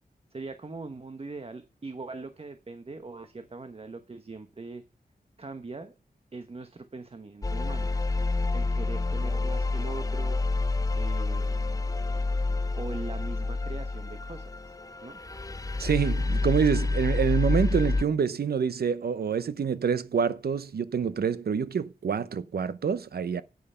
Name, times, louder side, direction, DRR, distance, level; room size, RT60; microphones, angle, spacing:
voice 1, 0.3-4.8 5.4-6.0 6.3-7.9 8.5-10.4 10.9-11.9 12.7-14.8 15.0-15.2, right 3 dB, 40° right, 1.1 m, -41 dB
sound 1, 7.4-18.0, left 3 dB, 20° left, 0.5 m, -28 dB
voice 2, 15.8-23.4, right 6 dB, 80° right, 0.7 m, -27 dB
9.3 x 8.9 x 5.6 m
wide cardioid pair, 85°, 16 cm